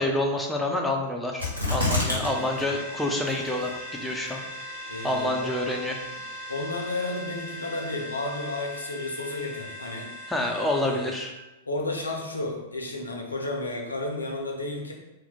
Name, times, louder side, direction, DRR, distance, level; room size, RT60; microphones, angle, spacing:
voice 1, 0.0-4.4 5.0-6.0 10.3-11.3, left 1 dB, 5° left, 0 dB, 0.5 m, -28 dB
sound 1, 1.4-2.3 2.6-2.7 3.3-3.7 4.3-4.4, left 2 dB, 80° right, 1.2 m, -26 dB
voice 2, 2.1-2.7 4.9-5.5 6.5-10.1 10.9-11.0 11.7-14.9, left 2 dB, 80° left, 1 dB, 0.6 m, -32 dB
sound 2, 2.2-11.2, left 1 dB, 40° right, 1.3 m, -39 dB
2.8 x 2.1 x 4.0 m, 1.0 s
figure-of-eight pair, 100°, 0 cm